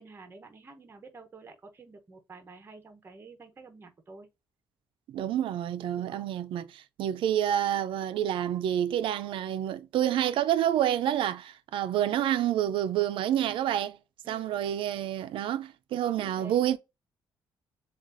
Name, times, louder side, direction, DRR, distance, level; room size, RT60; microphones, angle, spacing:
voice 1, 0.0-4.3 6.0-6.3 14.2-14.8 16.0-16.7, right 3 dB, 25° right, 0.9 m, -50 dB
voice 2, 5.1-14.0 14.3-16.8, right 11 dB, 90° right, 0.5 m, -28 dB
7.3 x 2.4 x 2.6 m
cardioid pair, 170°, 9 cm